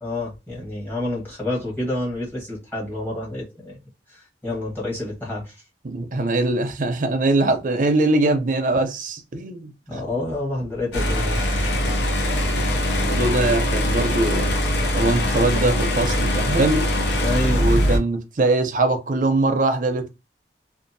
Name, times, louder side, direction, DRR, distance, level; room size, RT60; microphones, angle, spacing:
voice 1, 0.0-3.8 4.1-5.6 9.9-11.5 17.2-17.6, left 1 dB, 10° left, 1.0 m, -28 dB
voice 2, 5.8-9.7 13.0-14.5 14.9-16.9 17.6-20.1, right 2 dB, 45° right, 0.5 m, -22 dB
sound 1, 10.9-18.0, equal, 75° left, 0.6 m, -22 dB
2.6 x 2.4 x 2.6 m
head